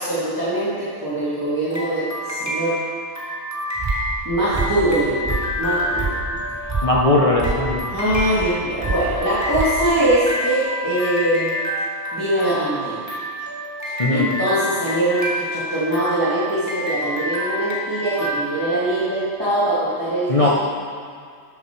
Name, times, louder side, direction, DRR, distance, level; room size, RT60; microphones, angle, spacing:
voice 1, 0.0-2.8 4.2-6.2 7.9-11.5 12.1-13.2 13.8-20.5, right 1 dB, 15° right, -11 dB, 2.1 m, -22 dB
sound 1, 1.7-19.4, equal, 15° left, 1.6 m, -28 dB
sound 2, 3.8-10.2, right 3 dB, 35° right, 0.4 m, -29 dB
voice 2, 6.8-7.8 14.0-14.3 20.3-20.5, left 2 dB, 30° left, -2 dB, 0.8 m, -18 dB
12.5 x 7.4 x 4.6 m, 2.1 s
omnidirectional pair, 1.4 m